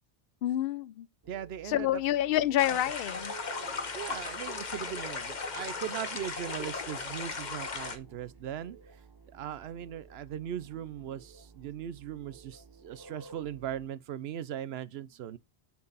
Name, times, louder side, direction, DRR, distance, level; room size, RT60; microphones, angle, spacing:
voice 1, 0.4-1.1 1.6-3.3, left 13 dB, 65° left, 0.7 m, -28 dB
sound 1, 1.2-13.9, right 4 dB, 25° right, 0.8 m, -53 dB
voice 2, 1.3-2.0 2.7-2.8 3.9-8.8 9.3-15.4, right 10 dB, 70° right, 0.9 m, -39 dB
sound 2, 2.6-8.0, left 4 dB, 45° left, 1.0 m, -37 dB
8.5 x 4.6 x 4.0 m
omnidirectional pair, 1.1 m